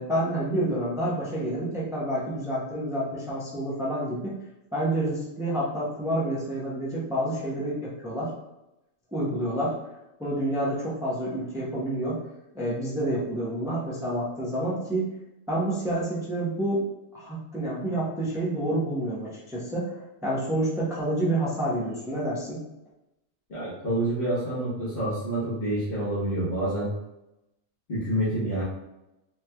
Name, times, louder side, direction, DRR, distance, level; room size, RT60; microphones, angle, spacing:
voice 1, 0.0-4.3 4.7-8.3 9.1-9.8 10.2-12.2 12.5-15.1 15.5-16.8 17.1-22.6, right 1 dB, 5° right, -6 dB, 0.7 m, -28 dB
voice 2, 23.5-26.9 27.9-28.6, right 1 dB, 45° left, -10 dB, 1.3 m, -28 dB
4.5 x 3.2 x 2.2 m, 0.93 s
omnidirectional pair, 1.4 m